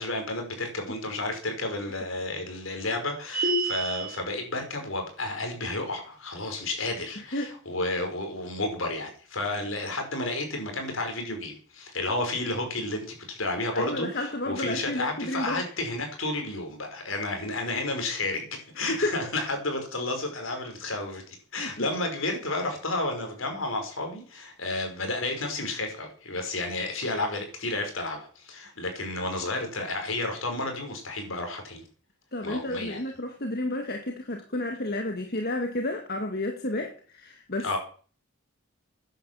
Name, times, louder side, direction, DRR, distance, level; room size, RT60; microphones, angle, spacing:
voice 1, 0.0-31.8 32.4-33.0 37.6-37.8, left 2 dB, 70° left, 4 dB, 5.5 m, -31 dB
sound 1, 3.3-4.2, right 1 dB, 40° right, 3.3 m, -27 dB
voice 2, 7.2-7.6 13.7-15.6 18.9-19.2 21.6-21.9 32.3-37.8, left 1 dB, 50° left, 4 dB, 1.9 m, -31 dB
12.0 x 10.5 x 7.5 m, 0.42 s
head